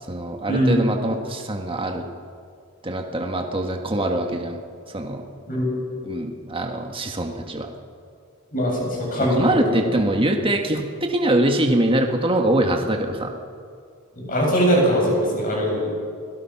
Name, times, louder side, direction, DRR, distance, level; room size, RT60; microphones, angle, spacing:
voice 1, 0.1-2.0 2.8-4.6 4.9-5.2 6.0-7.7 9.4-13.3, right 1 dB, 25° right, 3 dB, 1.7 m, -23 dB
voice 2, 8.5-9.9 14.2-15.9, equal, 40° left, -2 dB, 7.9 m, -21 dB
29.0 x 18.5 x 5.9 m, 2.2 s
head